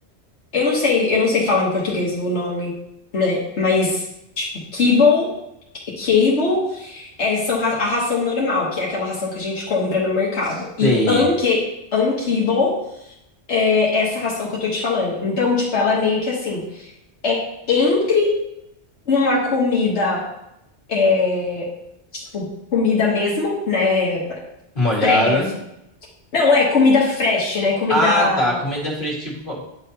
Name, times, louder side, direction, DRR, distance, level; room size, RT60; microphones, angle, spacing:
voice 1, 0.5-2.7 3.1-4.0 4.4-4.5 4.7-5.3 6.0-11.6 11.9-12.7 13.5-16.9 17.2-17.4 17.7-18.3 19.1-20.2 20.9-21.7 22.1-22.4 22.7-24.4 25.0-25.4 26.3-28.6, left 4 dB, 80° left, -4 dB, 1.5 m, -20 dB
voice 2, 10.8-11.2 24.8-25.5 27.9-29.6, equal, 50° left, -4 dB, 2.1 m, -21 dB
9.6 x 5.5 x 2.8 m, 0.84 s
omnidirectional pair, 1.2 m